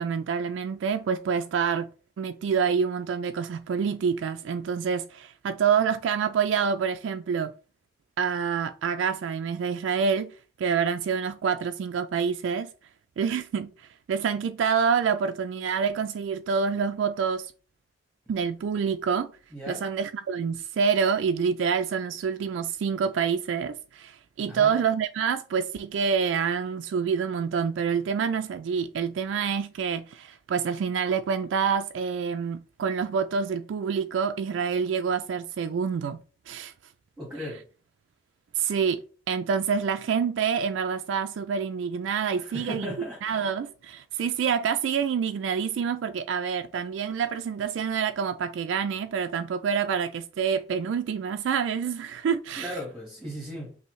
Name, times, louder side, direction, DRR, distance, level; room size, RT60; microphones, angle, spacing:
voice 1, 0.0-1.9 2.2-7.5 8.2-12.7 13.2-17.5 18.3-19.3 19.7-36.2 36.5-36.7 38.6-42.9 43.2-52.8, right 6 dB, 85° right, 0.3 m, -27 dB
voice 2, 19.5-19.8 24.5-24.8 37.2-37.6 42.4-43.4 52.6-53.8, equal, ahead, 1.3 m, -37 dB
5.4 x 2.7 x 3.1 m
head